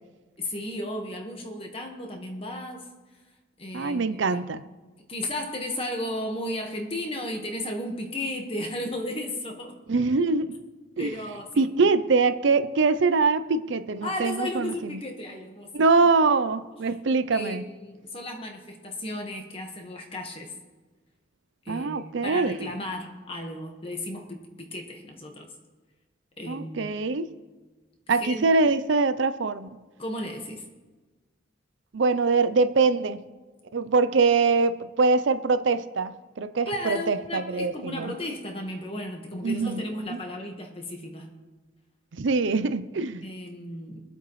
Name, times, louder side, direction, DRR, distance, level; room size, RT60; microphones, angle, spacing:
voice 1, 0.4-2.9 3.6-4.4 5.1-9.8 11.0-11.6 14.0-15.9 17.3-20.5 21.6-25.5 26.4-26.9 28.2-28.4 30.0-30.6 36.7-41.3 43.2-44.0, left 1 dB, 30° left, 2 dB, 1.5 m, -34 dB
voice 2, 3.7-4.6 9.9-10.6 11.0-11.1 11.6-14.9 15.7-17.7 21.7-22.7 26.5-27.3 28.1-29.7 31.9-33.2 33.7-38.1 39.4-39.8 40.1-40.2 42.1-43.2, right 4 dB, 75° right, 12 dB, 0.5 m, -23 dB
24.0 x 8.0 x 3.2 m, 1.2 s
head